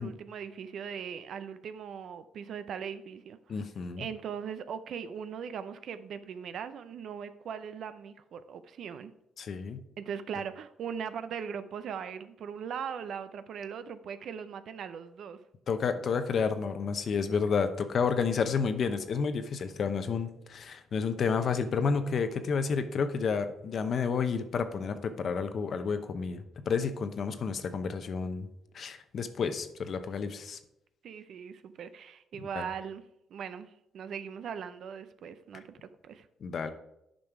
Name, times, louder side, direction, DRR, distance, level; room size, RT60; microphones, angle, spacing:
voice 1, 0.0-3.6 4.0-9.1 10.0-15.4 31.0-33.0 33.3-36.3, right 7 dB, 70° right, 0.5 m, -40 dB
voice 2, 3.5-4.1 9.4-9.8 15.7-28.5 28.7-30.6 32.5-32.7 36.4-36.7, left 5 dB, 55° left, 0.8 m, -30 dB
8.9 x 5.4 x 4.7 m
cardioid pair, 90°, 0 cm